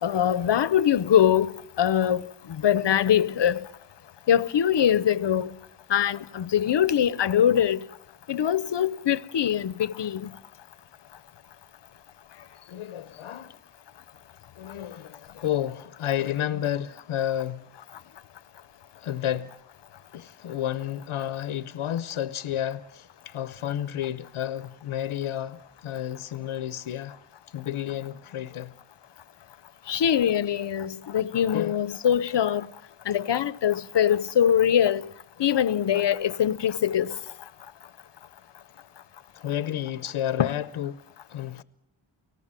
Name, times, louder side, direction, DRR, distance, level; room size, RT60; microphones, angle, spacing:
voice 1, 0.0-2.2 2.6-3.6 4.3-5.5 5.9-7.8 8.3-10.3 29.9-32.7 33.1-35.1 35.4-37.2 40.4-40.5, left 9 dB, 60° left, 0.9 m, -23 dB
voice 2, 12.7-13.6 14.6-17.7 18.9-19.5 20.1-27.1 27.5-28.7 31.5-31.8 39.3-41.0 41.3-41.6, left 11 dB, 90° left, 0.9 m, -31 dB
29.5 x 19.0 x 7.6 m
wide cardioid pair, 110°, 48 cm